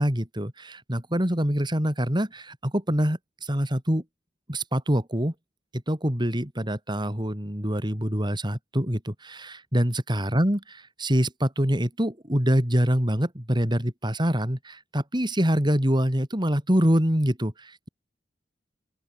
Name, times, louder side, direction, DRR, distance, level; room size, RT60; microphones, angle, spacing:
voice 1, 0.0-4.0 4.5-5.3 5.7-17.9, equal, 25° right, 4.6 m, -25 dB
open air
head